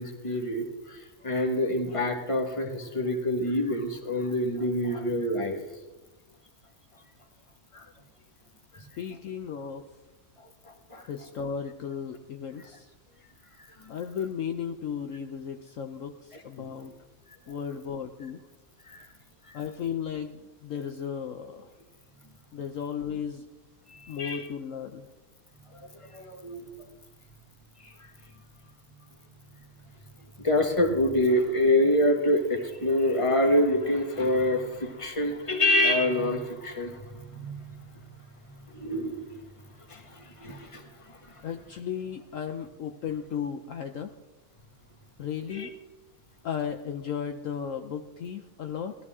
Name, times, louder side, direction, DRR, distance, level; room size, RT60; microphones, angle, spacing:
voice 1, 0.0-5.6 7.7-7.9 10.4-11.1 13.8-13.9 16.3-16.7 18.9-19.0 19.5-19.6 23.9-24.5 25.7-26.7 27.8-28.1 30.4-37.8 38.7-39.3 39.9-41.4 45.5-45.7, left 1 dB, 20° left, 4 dB, 1.5 m, -27 dB
voice 2, 8.8-9.9 11.1-12.9 13.9-16.9 17.5-18.5 19.5-21.7 22.5-23.4 24.1-25.1 41.4-44.1 45.2-45.7 46.4-49.0, left 7 dB, 65° left, 6 dB, 1.0 m, -35 dB
18.5 x 13.5 x 3.6 m, 1.1 s
omnidirectional pair, 1.6 m